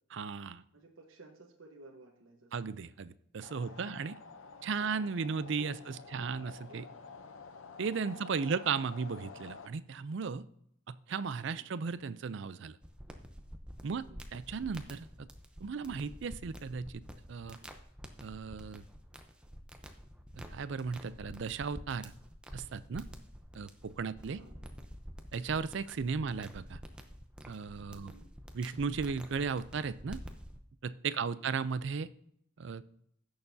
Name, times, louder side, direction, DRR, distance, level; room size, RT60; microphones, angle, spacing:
voice 1, 0.1-0.6 2.5-4.1 4.6-6.8 7.8-10.4 10.9-12.8 13.8-14.0 14.3-15.3 15.6-17.0 17.3-17.6 18.2-18.8 20.4-22.1 22.5-23.1 23.5-24.4 25.3-26.8 27.5-28.1 28.5-30.2 30.8-32.1 32.6-32.8, right 5 dB, 60° right, 15 dB, 0.4 m, -36 dB
voice 2, 0.7-2.6 3.6-4.2 4.5-4.6 4.8-4.9 5.6-6.3 6.7-6.9 8.1-8.7 11.4-11.7 13.9-14.4 24.2-24.6 26.1-26.3 27.9-28.3 31.1-31.5, right 2 dB, 75° right, 0 dB, 1.1 m, -57 dB
sound 1, 3.4-9.7, left 4 dB, 75° left, 0.7 m, -50 dB
sound 2, 12.8-30.6, equal, 5° right, 0.7 m, -49 dB
16.0 x 6.7 x 2.7 m, 0.72 s
head